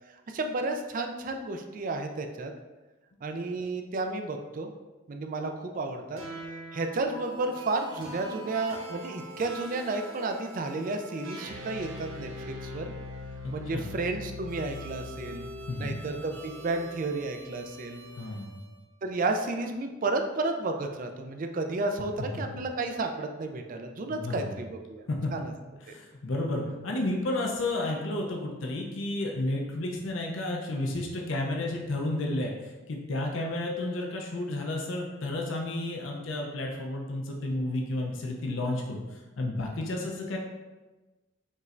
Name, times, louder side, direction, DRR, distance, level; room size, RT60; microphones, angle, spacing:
voice 1, 0.3-2.5 3.2-4.7 5.1-6.2 6.7-12.9 13.5-15.4 15.8-18.0 19.0-25.0 25.3-25.5 25.9-26.0, right 2 dB, 40° right, 5 dB, 0.4 m, -32 dB
sound 1, 6.2-18.7, left 1 dB, 80° right, 0.8 m, -42 dB
voice 2, 13.4-13.9 15.7-16.0 18.2-18.5 24.1-24.4 25.1-25.3 25.9-40.4, left 2 dB, 75° left, 0 dB, 0.6 m, -32 dB
5.3 x 3.1 x 2.5 m, 1.2 s
head